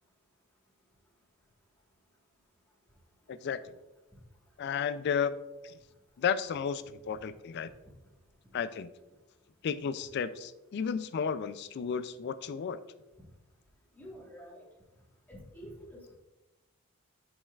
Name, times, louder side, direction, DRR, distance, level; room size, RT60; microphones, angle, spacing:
voice 1, 3.3-3.7 4.6-5.8 6.2-7.7 8.5-8.9 9.6-12.8, left 7 dB, 50° left, 13 dB, 0.3 m, -33 dB
voice 2, 13.9-14.6 15.3-16.0, equal, 10° left, -3 dB, 1.4 m, -48 dB
8.5 x 5.3 x 2.4 m, 1.0 s
head